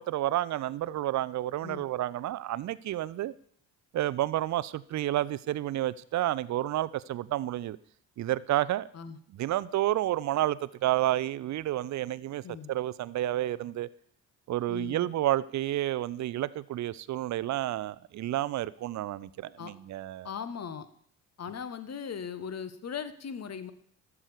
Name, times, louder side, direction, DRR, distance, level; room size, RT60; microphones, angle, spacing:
voice 1, 0.0-3.3 3.9-7.8 8.2-8.9 9.3-12.4 12.7-13.9 14.5-20.3, right 14 dB, 40° right, 0.5 m, -30 dB
voice 2, 14.7-15.1 19.6-19.7 20.2-20.9 21.4-23.7, left 7 dB, 35° left, 1.1 m, -38 dB
12.5 x 4.9 x 6.9 m
hypercardioid pair, 45°, 47 cm